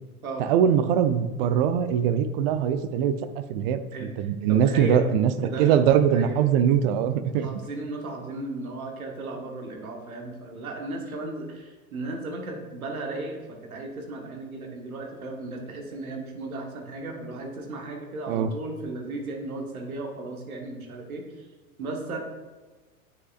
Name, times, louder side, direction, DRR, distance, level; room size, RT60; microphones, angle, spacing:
voice 1, 0.4-3.8 4.2-5.3 5.6-7.5 18.3-18.5, right 8 dB, 40° right, 11 dB, 0.5 m, -22 dB
voice 2, 3.9-5.1 5.4-6.4 7.4-21.5 21.8-22.2, right 2 dB, 75° right, 2 dB, 1.4 m, -35 dB
9.5 x 5.8 x 2.5 m, 1.3 s
figure-of-eight pair, 85°, 43 cm